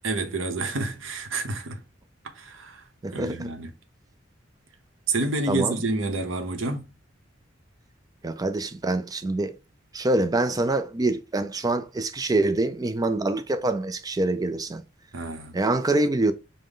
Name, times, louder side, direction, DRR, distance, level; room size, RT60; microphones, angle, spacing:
voice 1, 0.0-1.8 2.2-2.8 3.1-3.7 5.1-6.9 15.1-15.6, right 2 dB, 85° right, 0.9 m, -29 dB
voice 2, 3.0-3.5 5.5-5.8 8.2-9.5 9.9-14.8 15.5-16.3, right 2 dB, 20° right, 0.4 m, -25 dB
5.2 x 2.2 x 3.7 m
head